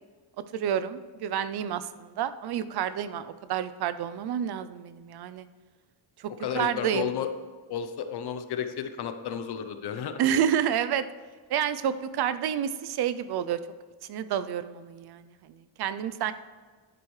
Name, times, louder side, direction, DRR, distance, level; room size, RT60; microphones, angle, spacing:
voice 1, 0.5-5.5 6.2-7.1 10.2-11.1 11.5-13.6 14.1-16.3, right 9 dB, 55° right, 13 dB, 0.5 m, -29 dB
voice 2, 6.4-7.3 7.7-10.2, left 8 dB, 55° left, 8 dB, 0.8 m, -32 dB
11.0 x 11.0 x 3.2 m, 1.5 s
cardioid pair, 175°, 47 cm